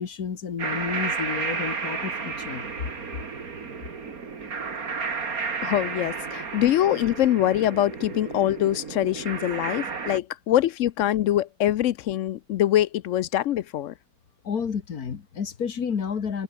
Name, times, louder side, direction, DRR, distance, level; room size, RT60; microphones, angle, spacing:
voice 1, 0.0-2.7 14.4-16.4, left 6 dB, 90° left, 2.2 m, -31 dB
sound 1, 0.6-10.2, right 5 dB, 75° right, 2.7 m, -32 dB
voice 2, 5.6-13.9, left 12 dB, 65° left, 0.8 m, -24 dB
omnidirectional pair, 1.5 m